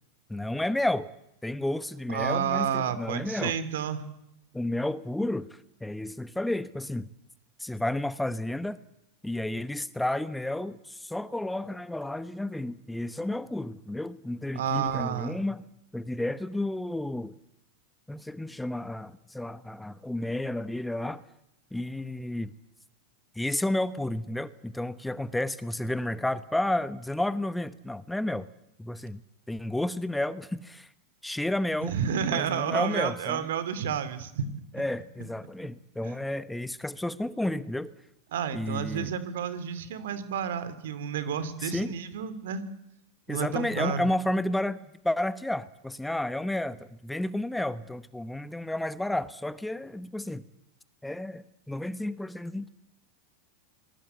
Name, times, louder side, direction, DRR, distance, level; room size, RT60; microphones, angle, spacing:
voice 1, 0.3-1.1 1.4-3.6 4.5-5.5 5.8-7.1 7.6-8.8 9.2-15.6 15.9-17.3 18.1-21.2 21.7-22.5 23.4-28.5 28.8-29.2 29.5-30.9 31.2-31.9 32.3-33.4 34.7-37.9 38.5-39.1 41.6-41.9 43.3-44.8 45.0-50.4 51.0-52.7, left 1 dB, 5° left, 14 dB, 1.0 m, -31 dB
voice 2, 2.1-4.0 14.5-15.4 31.8-34.5 36.0-36.1 38.3-42.6 43.3-44.1, right 8 dB, 80° right, 14 dB, 2.8 m, -30 dB
26.5 x 21.0 x 8.2 m, 0.81 s
hypercardioid pair, 110°, 0 cm